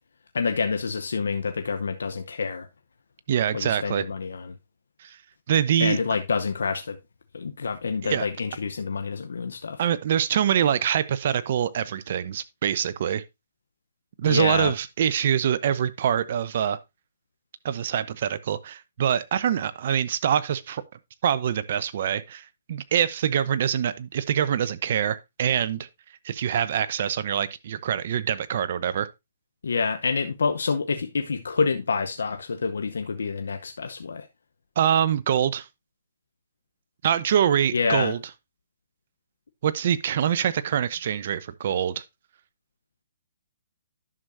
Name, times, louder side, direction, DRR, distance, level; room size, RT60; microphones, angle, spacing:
voice 1, 0.3-2.7 3.5-4.6 5.8-7.0 7.3-9.8 14.3-14.7 29.6-34.3 37.7-38.1, left 5 dB, 80° left, 0.8 m, -27 dB
voice 2, 3.3-4.0 5.0-5.2 5.5-6.0 8.0-8.3 9.8-13.2 14.2-16.8 17.6-20.8 21.2-25.9 26.2-29.1 34.8-35.7 37.0-38.2 39.6-42.0, right 9 dB, 50° right, 0.7 m, -24 dB
11.0 x 6.3 x 2.6 m
hypercardioid pair, 145°, 0 cm